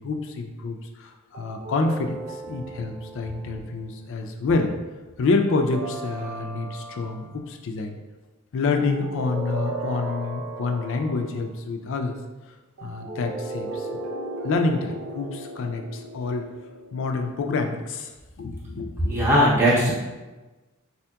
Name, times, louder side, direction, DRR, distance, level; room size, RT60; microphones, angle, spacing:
voice 1, 0.0-4.7 5.2-8.0 8.5-12.2 12.8-13.9 14.4-16.5 16.9-18.1 18.4-19.3, left 3 dB, 60° left, 5 dB, 0.4 m, -27 dB
sound 1, 1.3-3.8 5.5-7.3 8.7-11.4 12.8-17.3, right 2 dB, 85° right, 0.6 m, -36 dB
voice 2, 19.1-19.9, equal, 10° right, -9 dB, 0.6 m, -18 dB
4.3 x 2.8 x 2.2 m, 1.2 s
head